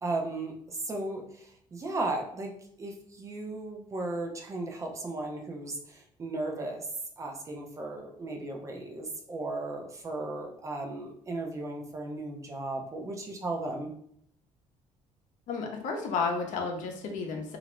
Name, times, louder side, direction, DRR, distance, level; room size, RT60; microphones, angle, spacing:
voice 1, 0.0-2.5 2.8-6.9 7.2-13.9, right 2 dB, 25° right, 2 dB, 0.5 m, -36 dB
voice 2, 15.5-17.6, left 4 dB, 80° left, 2 dB, 0.6 m, -32 dB
2.4 x 2.0 x 2.9 m, 0.67 s
cardioid pair, 140°, 13 cm